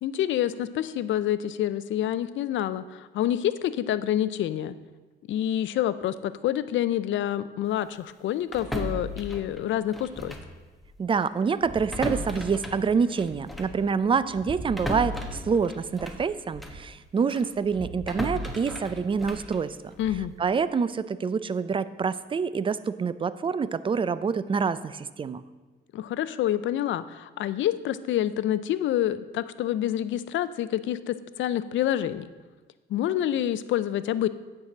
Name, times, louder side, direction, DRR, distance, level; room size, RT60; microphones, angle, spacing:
voice 1, 0.0-4.8 5.3-10.4 20.0-20.3 25.9-32.3 32.9-34.3, left 11 dB, 70° left, 15 dB, 0.5 m, -27 dB
sound 1, 8.5-10.6 10.8-11.0 11.6-16.9 17.3-20.4, equal, ahead, 1.1 m, -36 dB
voice 2, 11.0-19.8 20.4-25.4, right 5 dB, 25° right, 15 dB, 0.4 m, -26 dB
9.0 x 4.8 x 7.1 m, 1.3 s
cardioid pair, 90°, 20 cm